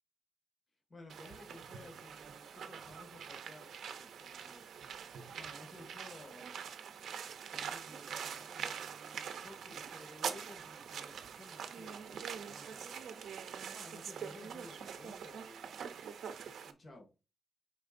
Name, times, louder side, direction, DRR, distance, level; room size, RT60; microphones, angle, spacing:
voice 1, 0.9-4.7 5.3-6.5 7.5-13.1 13.7-15.7 16.6-17.1, left 1 dB, 35° left, 2.3 m, -55 dB
sound 1, 1.1-16.7, right 7 dB, 85° right, 0.8 m, -44 dB
9.9 x 4.6 x 2.7 m
wide cardioid pair, 135°, 0 cm